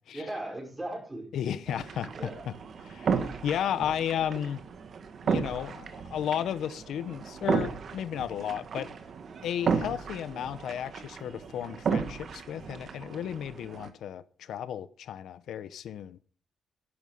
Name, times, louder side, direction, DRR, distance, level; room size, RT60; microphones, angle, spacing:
voice 1, 0.1-2.4 3.7-3.9, right 1 dB, 15° right, 5.3 m, -40 dB
voice 2, 1.3-2.5 2.8-4.6 5.2-8.9 9.4-16.2, left 9 dB, 85° left, 0.8 m, -34 dB
sound 1, 1.7-13.9, right 6 dB, 50° right, 1.7 m, -34 dB
11.5 x 11.0 x 5.4 m
cardioid pair, 145°, 0 cm